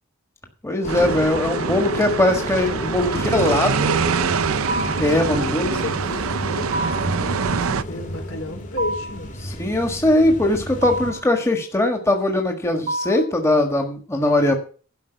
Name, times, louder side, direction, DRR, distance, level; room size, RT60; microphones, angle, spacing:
voice 1, 0.6-3.7 5.0-5.7 9.4-14.5, left 1 dB, 15° left, 3 dB, 1.6 m, -20 dB
sound 1, 0.8-11.1, left 1 dB, 35° left, 2.4 m, -31 dB
sound 2, 0.9-7.8, right 6 dB, 80° right, 0.6 m, -25 dB
voice 2, 2.8-4.1 5.3-9.3, left 2 dB, 70° left, 3 dB, 3.9 m, -34 dB
sound 3, 4.7-5.2 6.7-7.2 8.8-9.3 10.8-11.3 12.9-13.4, right 1 dB, 35° right, 0.6 m, -27 dB
12.5 x 5.4 x 7.9 m, 0.39 s
head